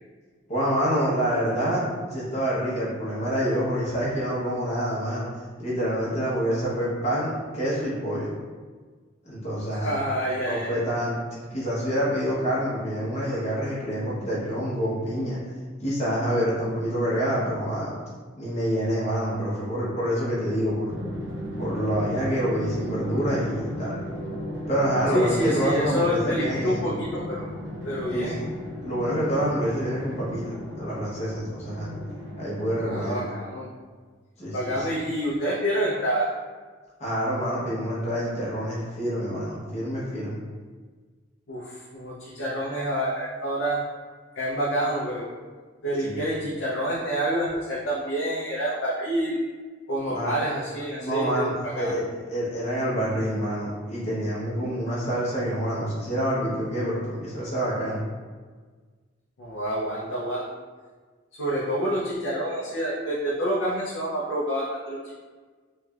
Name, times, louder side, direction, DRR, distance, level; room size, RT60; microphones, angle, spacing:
voice 1, 0.5-1.8 2.1-5.3 5.6-8.3 9.2-10.0 10.5-15.4 15.8-18.0 18.4-21.0 21.6-24.0 24.7-26.8 28.1-28.4 28.8-31.9 32.4-33.2 34.4-34.9 37.0-40.4 46.0-46.2 50.1-50.3 51.0-58.0, equal, 35° left, -8 dB, 0.9 m, -27 dB
voice 2, 9.7-10.8 25.1-27.5 27.8-28.4 32.8-33.7 34.5-36.3 41.5-43.8 44.4-45.3 45.8-49.4 49.9-52.0 59.4-60.4 61.4-65.1, equal, 90° left, -6 dB, 0.6 m, -27 dB
Drum, 20.9-33.3, equal, 65° right, 1.0 m, -35 dB
3.2 x 3.2 x 2.3 m, 1.5 s
head